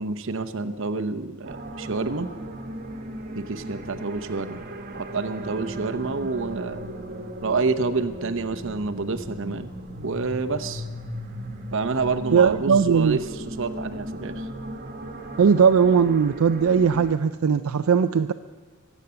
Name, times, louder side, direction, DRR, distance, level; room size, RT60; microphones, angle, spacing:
voice 1, 0.0-2.3 3.3-4.6 4.9-6.9 7.4-9.7 10.0-10.8 11.7-14.5, right 4 dB, 60° right, 9 dB, 0.8 m, -28 dB
sound 1, 1.4-17.1, right 1 dB, 40° right, 1.3 m, -37 dB
voice 2, 12.3-13.2 15.4-18.3, right 6 dB, 80° right, 8 dB, 0.4 m, -19 dB
23.5 x 8.2 x 6.9 m, 1.3 s
head